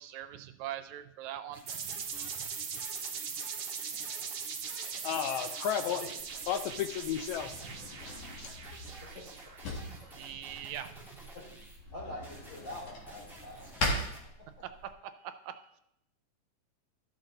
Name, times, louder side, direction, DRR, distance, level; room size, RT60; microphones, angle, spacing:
voice 1, 0.0-2.0 2.4-2.8 9.9-11.1 14.8-14.9 15.2-15.7, right 11 dB, 85° right, 9 dB, 1.9 m, -43 dB
sound 1, 1.5-11.8 12.2-14.2, right 1 dB, ahead, 2.0 m, -52 dB
sound 2, 1.7-10.2, right 6 dB, 65° right, 1.1 m, -40 dB
voice 2, 3.9-4.3 5.8-6.2 9.0-9.2 10.1-10.3 11.3-11.4 11.9-13.7, left 1 dB, 25° left, -4 dB, 3.9 m, -45 dB
voice 3, 5.0-6.0 6.5-7.6 8.4-8.5, left 9 dB, 80° left, 8 dB, 2.0 m, -33 dB
Drawer open or close, 6.2-14.9, left 1 dB, 60° left, 2.9 m, -41 dB
14.0 x 6.5 x 3.9 m, 0.74 s
omnidirectional pair, 3.3 m